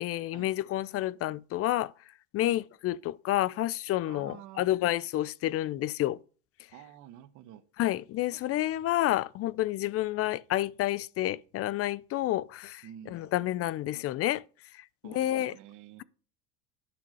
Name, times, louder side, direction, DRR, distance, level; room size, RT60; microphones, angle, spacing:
voice 1, 0.0-1.9 2.3-6.2 7.8-14.4 14.7-15.5, left 14 dB, 40° left, 0.5 m, -30 dB
voice 2, 4.0-4.7 6.7-7.7 12.8-13.4 15.0-16.0, right 11 dB, 55° right, 1.3 m, -49 dB
9.8 x 6.1 x 5.4 m
supercardioid pair, 95°, 36 cm